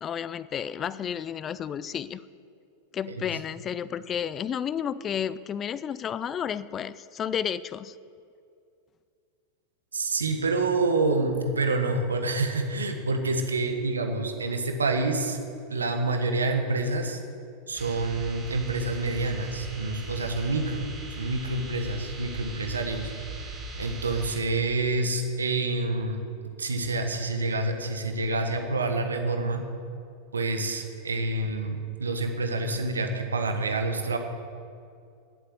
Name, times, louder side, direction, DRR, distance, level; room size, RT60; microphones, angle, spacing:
voice 1, 0.0-2.2 2.9-7.9, left 8 dB, 30° left, 17 dB, 0.4 m, -32 dB
voice 2, 9.9-15.4 15.7-17.2 17.7-20.9 21.2-23.1 23.8-26.2 26.6-29.6 30.3-34.2, right 2 dB, 80° right, 5 dB, 1.5 m, -27 dB
sound 1, 17.8-24.4, right 2 dB, 20° right, 3.3 m, -39 dB
11.5 x 8.2 x 7.9 m, 2.4 s
figure-of-eight pair, 90°, 0 cm